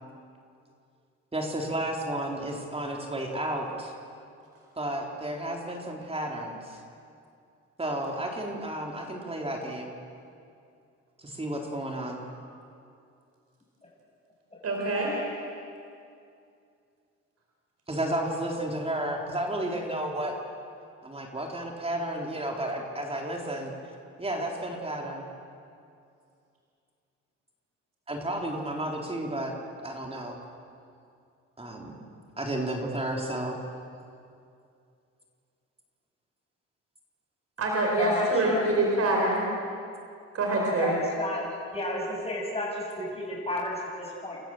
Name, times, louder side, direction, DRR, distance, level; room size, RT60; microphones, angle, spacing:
voice 1, 1.3-3.9 4.8-6.8 7.8-9.9 11.2-12.2 17.9-20.4 21.0-23.7 24.2-25.3 28.1-29.6 29.8-30.4 31.6-32.0 32.4-33.6, right 1 dB, 20° right, 0 dB, 3.9 m, -32 dB
voice 2, 14.6-15.5 37.6-39.5 40.3-41.0, right 2 dB, 55° right, -1 dB, 4.9 m, -25 dB
voice 3, 38.0-38.6 40.8-41.4 41.7-44.4, left 1 dB, 20° left, -3 dB, 7.3 m, -32 dB
30.0 x 14.0 x 7.7 m, 2.4 s
cardioid pair, 90°, 30 cm